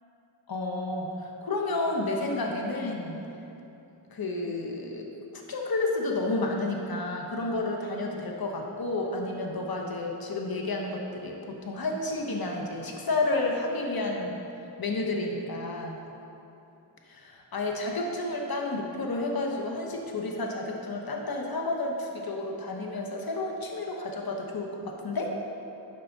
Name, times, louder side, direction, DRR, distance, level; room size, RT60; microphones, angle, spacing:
voice 1, 0.5-3.2 4.1-5.1 5.3-14.4 14.8-16.0 17.1-25.3, left 2 dB, 50° left, 0 dB, 0.9 m, -31 dB
11.5 x 5.0 x 3.5 m, 2.9 s
wide cardioid pair, 60°, 45 cm